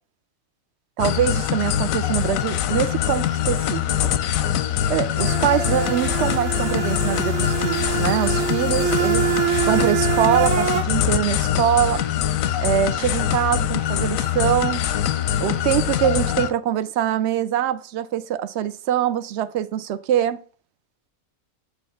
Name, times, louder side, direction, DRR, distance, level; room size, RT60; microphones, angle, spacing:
sound 1, 1.0-16.5, left 10 dB, 90° left, 1.0 m, -23 dB
voice 1, 1.0-3.8 4.9-9.3 9.7-12.0 12.6-14.8 15.4-20.4, right 10 dB, 65° right, 0.8 m, -23 dB
sound 2, 5.2-10.8, right 10 dB, 85° right, 1.2 m, -25 dB
8.4 x 3.1 x 5.5 m
omnidirectional pair, 1.4 m